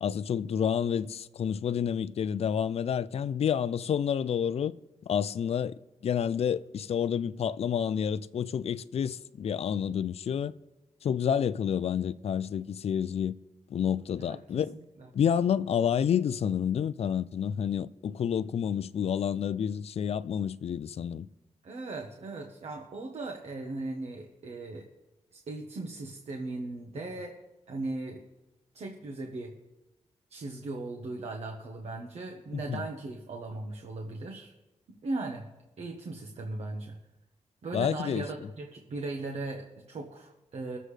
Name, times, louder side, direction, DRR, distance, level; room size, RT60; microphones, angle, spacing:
voice 1, 0.0-4.7 5.1-5.8 6.0-10.5 11.0-13.3 13.7-14.7 15.1-21.3 32.7-32.8 37.7-38.2, left 8 dB, 55° left, 0.4 m, -29 dB
voice 2, 14.2-15.1 21.6-24.8 25.3-27.3 27.7-28.2 28.7-29.5 30.3-34.5 35.0-35.4 35.8-37.0 37.6-40.8, right 2 dB, 65° right, 1.1 m, -38 dB
23.0 x 7.6 x 3.3 m
wide cardioid pair, 170°, 12 cm